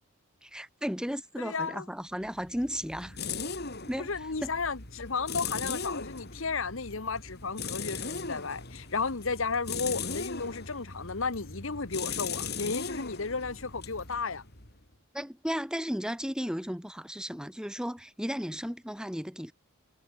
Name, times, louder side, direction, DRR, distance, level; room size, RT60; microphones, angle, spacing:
voice 1, 0.4-3.2 3.9-4.1 4.4-4.5 15.1-19.5, equal, 5° right, 5.1 m, -34 dB
voice 2, 1.4-1.8 4.0-14.4, left 4 dB, 65° left, 1.2 m, -33 dB
sound 1, 2.2-14.9, left 5 dB, 50° left, 6.9 m, -38 dB
head